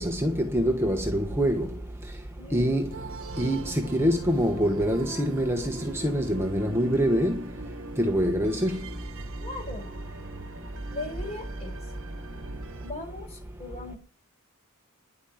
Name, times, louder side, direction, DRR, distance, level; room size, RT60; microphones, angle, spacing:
voice 1, 0.0-1.7 2.5-2.9 3.4-7.4 8.0-8.8, equal, 10° right, 1.2 m, -25 dB
voice 2, 2.4-2.8 9.4-9.9 10.9-11.8 12.8-14.0, left 2 dB, 30° left, 5.7 m, -38 dB
sound 1, 2.9-12.9, right 2 dB, 60° right, 1.3 m, -40 dB
11.0 x 8.1 x 9.4 m
head